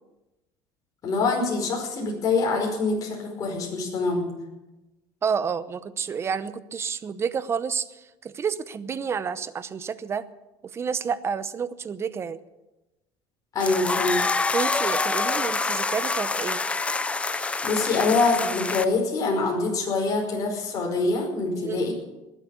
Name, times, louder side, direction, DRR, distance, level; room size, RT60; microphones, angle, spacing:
voice 1, 1.0-4.4 13.5-14.2 17.2-21.9, left 3 dB, 40° left, -1 dB, 5.1 m, -25 dB
voice 2, 5.2-10.2 10.7-12.4 14.5-16.6 21.5-21.8, right 6 dB, 30° right, 15 dB, 0.8 m, -29 dB
sound 1, 13.6-18.8, left 3 dB, 15° left, 0.6 m, -26 dB
20.5 x 8.5 x 8.4 m, 1.0 s
cardioid pair, 130°, 9 cm